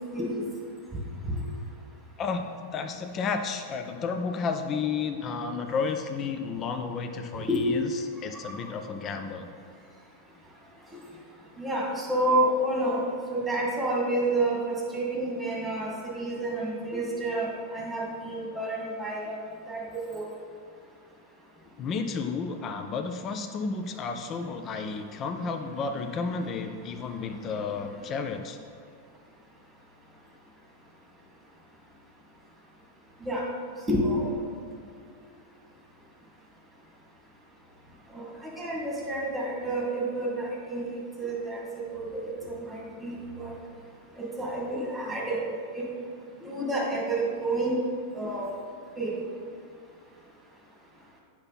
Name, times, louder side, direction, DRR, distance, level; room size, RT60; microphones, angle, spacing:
voice 1, 2.2-9.5 21.8-28.6, left 5 dB, 30° left, 6 dB, 0.5 m, -32 dB
voice 2, 7.4-7.7 8.4-8.5 11.6-13.0 13.3-19.4 19.7-20.3 33.2-33.5 33.9-34.3 38.1-40.9 41.2-41.6 41.9-43.5 44.2-45.4 45.7-45.8 46.4-47.8 48.1-48.5 49.0-49.2, right 1 dB, 10° right, -3 dB, 2.0 m, -29 dB
8.6 x 5.9 x 4.1 m, 2.3 s
figure-of-eight pair, 90°, 0 cm